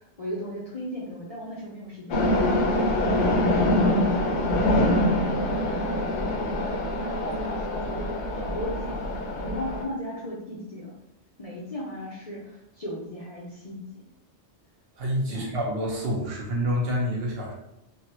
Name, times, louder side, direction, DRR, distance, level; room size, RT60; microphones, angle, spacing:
voice 1, 0.0-9.0 9.4-10.9 11.4-13.8 15.3-15.5, left 1 dB, 45° left, -5 dB, 0.5 m, -37 dB
sound 1, 2.1-9.8, left 1 dB, 75° left, 0.9 m, -24 dB
voice 2, 15.0-17.5, equal, 60° right, -2 dB, 0.9 m, -27 dB
3.3 x 2.1 x 2.8 m, 0.83 s
omnidirectional pair, 1.2 m